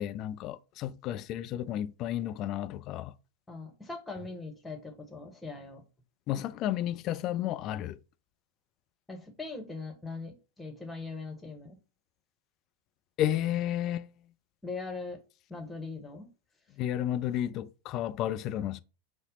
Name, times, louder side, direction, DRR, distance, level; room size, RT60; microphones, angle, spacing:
voice 1, 0.0-3.1 6.3-8.0 13.2-14.1 16.8-18.8, left 12 dB, 35° left, 0.3 m, -32 dB
voice 2, 3.5-5.8 9.1-11.8 14.6-15.2 15.5-16.3, left 3 dB, 10° left, 1.0 m, -41 dB
5.4 x 2.0 x 3.9 m
figure-of-eight pair, 90°, 0 cm